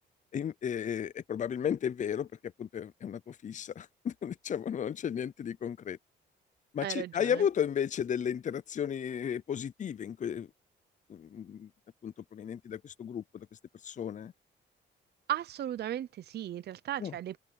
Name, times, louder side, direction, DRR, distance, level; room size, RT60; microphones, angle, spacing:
voice 1, 0.3-6.0 6.7-10.5 11.1-11.7 12.0-13.5 13.8-14.3 17.0-17.1, left 8 dB, 40° left, 0.6 m, -34 dB
voice 2, 6.8-7.4 15.3-17.4, right 11 dB, 55° right, 0.6 m, -36 dB
open air
cardioid pair, 90°, 20 cm